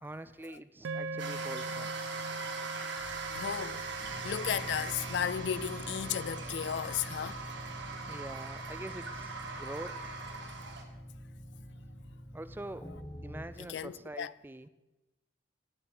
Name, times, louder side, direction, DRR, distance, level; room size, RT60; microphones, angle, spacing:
voice 1, 0.0-1.9 8.0-10.0 12.3-12.9 13.2-14.7, right 1 dB, 10° right, 0.3 m, -44 dB
sound 1, 0.8-9.2, right 2 dB, 80° right, 0.5 m, -44 dB
sound 2, 1.2-10.8, right 4 dB, 65° right, 1.7 m, -41 dB
sound 3, 3.0-13.5, equal, 15° left, 1.0 m, -46 dB
voice 2, 3.3-7.4 13.7-14.3, left 8 dB, 65° left, 0.3 m, -35 dB
17.0 x 6.7 x 5.5 m
head